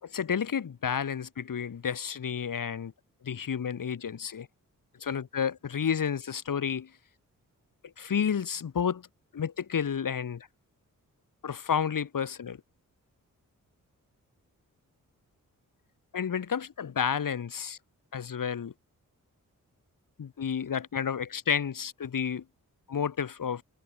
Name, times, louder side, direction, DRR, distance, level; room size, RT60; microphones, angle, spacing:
voice 1, 0.0-2.9 3.2-4.5 5.0-6.9 8.0-9.1 9.3-10.5 11.4-12.6 16.1-17.8 18.1-18.7 20.2-22.4 22.9-23.6, left 7 dB, 70° left, 3.4 m, -31 dB
cardioid pair, 75°, 34 cm